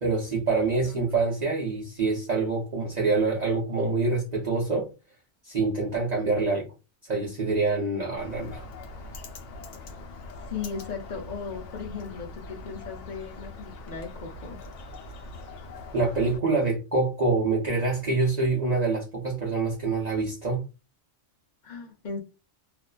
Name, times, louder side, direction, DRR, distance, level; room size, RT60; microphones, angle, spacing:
voice 1, 0.0-4.9 5.4-6.7 7.0-8.7 15.9-20.6, right 3 dB, 45° right, 0.6 m, -26 dB
Bird, 8.2-16.4, left 2 dB, 75° left, 0.9 m, -42 dB
voice 2, 10.5-14.6 21.6-22.2, left 5 dB, 50° left, 0.6 m, -37 dB
2.5 x 2.2 x 2.2 m
omnidirectional pair, 1.3 m